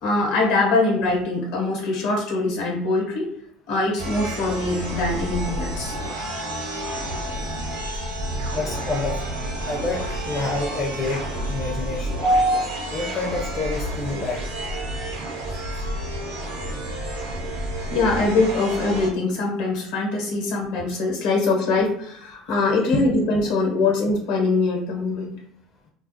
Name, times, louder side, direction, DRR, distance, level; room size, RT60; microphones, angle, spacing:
voice 1, 0.0-3.3 3.7-5.9 12.2-13.0 17.9-25.3, left 2 dB, 75° left, 0 dB, 0.9 m, -22 dB
sound 1, 4.0-19.1, right 1 dB, 85° right, 0.7 m, -30 dB
voice 2, 8.5-9.2 9.6-12.1 12.9-14.4, left 3 dB, 40° left, -1 dB, 0.5 m, -28 dB
2.3 x 2.0 x 2.6 m, 0.69 s
hypercardioid pair, 80°, 0 cm